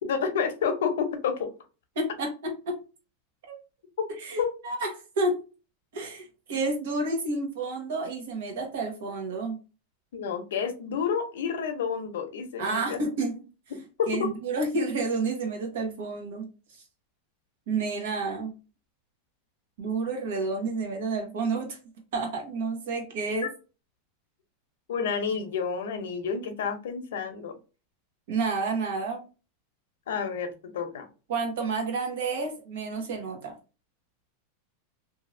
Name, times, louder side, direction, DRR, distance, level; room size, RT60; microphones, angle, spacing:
voice 1, 0.0-1.5 4.0-4.1 4.4-4.5 10.1-13.0 13.7-14.3 24.9-27.5 30.1-31.1, left 6 dB, 85° left, 7 dB, 0.7 m, -29 dB
voice 2, 1.9-2.7 3.5-3.6 4.2-5.4 5.9-9.6 12.6-13.4 14.1-16.5 17.7-18.5 19.8-21.8 22.1-23.5 28.3-29.2 31.3-33.5, right 3 dB, 70° right, 2 dB, 1.2 m, -30 dB
2.7 x 2.7 x 2.6 m, 0.33 s
supercardioid pair, 175°, 0 cm